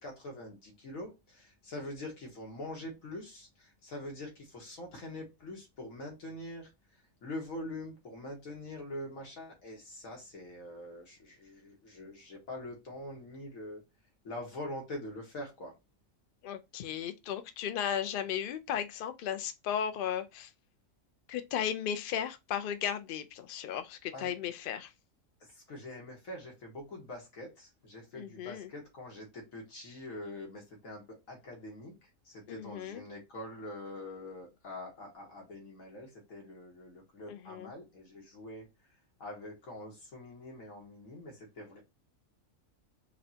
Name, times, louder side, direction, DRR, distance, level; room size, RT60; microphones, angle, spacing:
voice 1, 0.0-6.7 7.2-13.8 14.2-15.7 24.1-24.3 25.7-32.0 32.3-38.7 39.2-41.8, left 1 dB, 90° left, 1.6 m, -44 dB
voice 2, 16.4-20.5 21.3-24.9 28.1-28.7 32.5-33.0 37.3-37.7, left 9 dB, 65° left, 0.5 m, -35 dB
5.0 x 2.2 x 2.7 m
omnidirectional pair, 1.4 m